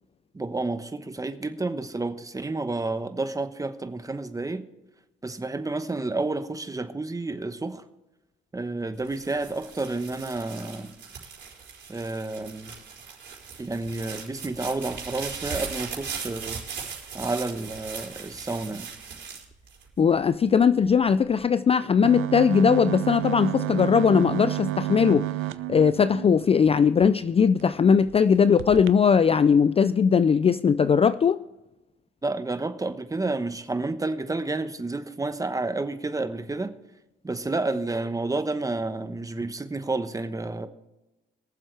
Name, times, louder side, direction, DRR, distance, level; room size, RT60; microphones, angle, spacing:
voice 1, 0.3-4.6 5.2-7.8 8.5-10.9 11.9-12.7 13.6-16.6 17.1-18.9 32.2-36.7 37.2-40.7, right 2 dB, 15° right, 1.1 m, -30 dB
sound 1, 9.0-20.3 20.9-21.4, right 6 dB, 60° right, 4.3 m, -39 dB
voice 2, 20.0-25.3 25.7-31.4, left 6 dB, 30° left, 0.4 m, -20 dB
sound 2, 22.0-27.1 27.6-27.7 28.0-28.2 28.6-28.9, right 16 dB, 85° right, 0.5 m, -31 dB
23.0 x 7.6 x 3.3 m
cardioid pair, 90°, 20 cm